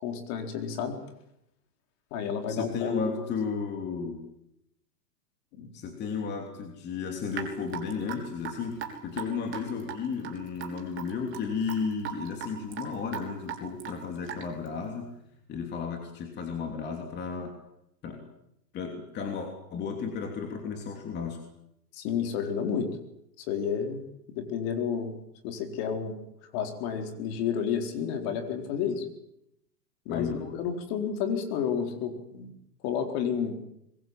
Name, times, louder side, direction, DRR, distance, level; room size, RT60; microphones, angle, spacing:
voice 1, 0.0-1.0 2.1-3.2 5.5-5.7 21.9-22.9 23.5-24.0 24.3-25.1 25.4-26.2 26.5-29.1 30.1-32.5 32.8-33.6, left 7 dB, 40° left, 4 dB, 4.2 m, -31 dB
voice 2, 2.5-4.2 5.7-15.1 15.5-17.5 18.0-18.2 18.7-21.4 30.1-30.5, left 5 dB, 20° left, 2 dB, 3.1 m, -33 dB
Raindrop / Drip, 7.3-14.7, right 8 dB, 25° right, 3.8 m, -39 dB
25.5 x 22.0 x 7.6 m, 0.80 s
hypercardioid pair, 150°, 49 cm